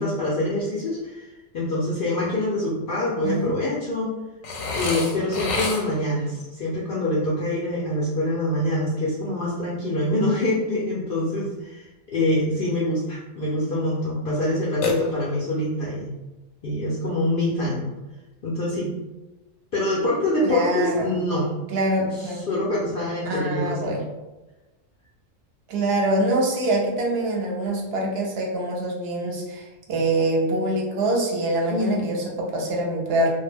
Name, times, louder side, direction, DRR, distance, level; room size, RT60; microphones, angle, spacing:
voice 1, 0.0-4.1 4.7-16.1 16.6-17.9 18.4-19.0 19.7-21.5 22.0-23.9 31.7-32.2, left 1 dB, 65° left, -6 dB, 0.5 m, -25 dB
Burping eructation, 4.4-6.1 14.8-15.6, left 3 dB, 90° left, 1.0 m, -28 dB
voice 2, 20.4-21.2 21.7-22.5 23.2-24.0 25.7-33.3, right 1 dB, 60° right, -1 dB, 0.7 m, -24 dB
2.2 x 2.1 x 3.3 m, 1.1 s
omnidirectional pair, 1.4 m